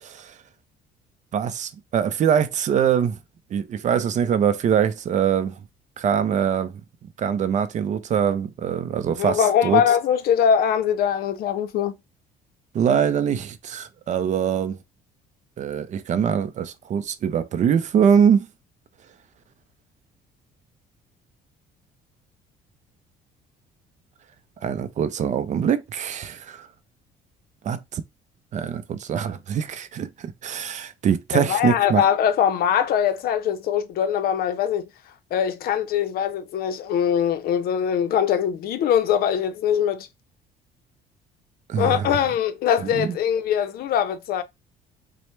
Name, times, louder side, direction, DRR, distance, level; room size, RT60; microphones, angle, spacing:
voice 1, 1.3-3.2 3.5-5.6 6.0-6.7 7.2-9.8 12.7-14.8 15.6-18.5 24.6-26.7 27.6-28.0 28.5-32.0 41.7-42.1 42.9-43.1, right 8 dB, 45° right, 0.4 m, -23 dB
voice 2, 9.2-12.0 31.3-34.9 35.3-40.1 41.8-44.4, left 9 dB, 65° left, 0.5 m, -22 dB
4.2 x 2.1 x 3.1 m
cardioid pair, 110°, 17 cm